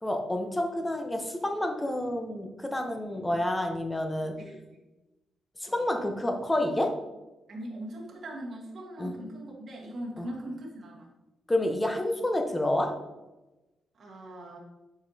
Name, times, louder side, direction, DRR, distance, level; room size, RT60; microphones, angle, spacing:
voice 1, 0.0-4.4 5.6-6.9 9.0-9.1 10.2-10.3 11.5-12.9, left 1 dB, 15° left, 4 dB, 0.9 m, -29 dB
voice 2, 4.4-4.8 5.7-5.9 7.5-11.1 13.9-14.6, right 1 dB, 55° right, -3 dB, 1.4 m, -40 dB
7.0 x 5.1 x 2.8 m, 1.1 s
cardioid pair, 85°, 0 cm